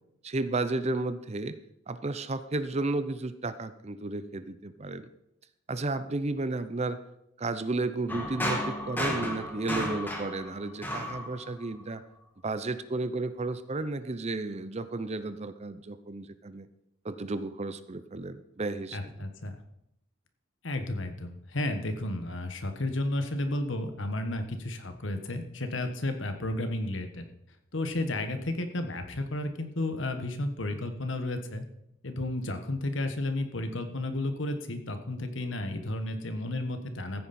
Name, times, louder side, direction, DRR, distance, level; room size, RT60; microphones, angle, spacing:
voice 1, 0.2-1.6 1.9-5.1 5.7-7.0 7.4-12.0 12.4-16.7 17.0-19.3, right 2 dB, 35° right, 12 dB, 0.7 m, -33 dB
sound 1, 8.1-11.9, equal, 10° left, 2.0 m, -33 dB
voice 2, 18.9-19.5 20.6-27.2 27.7-31.6 32.0-37.3, left 1 dB, 70° left, 7 dB, 1.4 m, -32 dB
14.5 x 9.3 x 4.3 m, 0.79 s
head